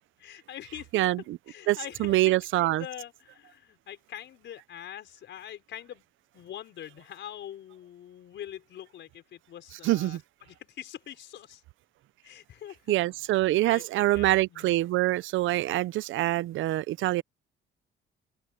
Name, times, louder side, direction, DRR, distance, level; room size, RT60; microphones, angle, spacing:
voice 1, 0.2-1.1 1.5-6.0 6.3-11.6 12.2-12.9 13.5-14.8, left 11 dB, 65° left, 4.5 m, -44 dB
voice 2, 0.9-1.4 1.7-2.8 9.8-10.2 12.9-17.2, right 16 dB, 75° right, 0.5 m, -25 dB
open air
cardioid pair, 130°, 20 cm